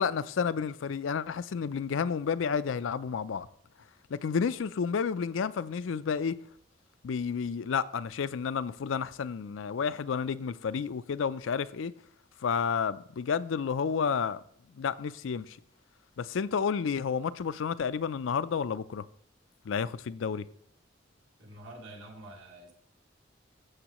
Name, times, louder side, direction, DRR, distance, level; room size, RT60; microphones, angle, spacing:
voice 1, 0.0-3.5 4.1-6.4 7.0-11.9 12.4-14.4 14.8-15.6 16.2-19.1 19.6-20.5, left 6 dB, 90° left, 0.4 m, -31 dB
voice 2, 21.4-22.7, right 1 dB, 80° right, 2.4 m, -47 dB
13.0 x 7.3 x 3.0 m
head